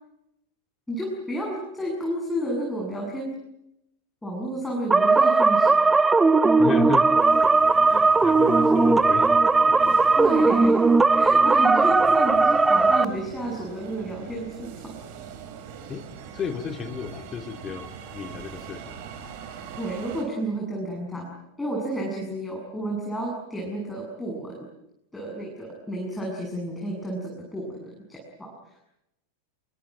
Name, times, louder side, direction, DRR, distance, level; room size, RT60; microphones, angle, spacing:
voice 1, 0.9-3.3 4.2-6.0 10.2-10.8 11.1-15.0 19.8-24.7 25.1-28.8, right 1 dB, 5° left, -1 dB, 7.5 m, -31 dB
sound 1, 4.9-13.1, right 3 dB, 10° right, 1.0 m, -18 dB
voice 2, 6.6-7.1 7.9-9.3 9.7-10.1 15.9-16.0 16.3-19.0, left 7 dB, 25° left, 8 dB, 2.5 m, -33 dB
sound 2, 7.2-20.2, right 7 dB, 50° right, 5.4 m, -42 dB
27.0 x 23.5 x 8.8 m, 0.85 s
figure-of-eight pair, 90°, 0 cm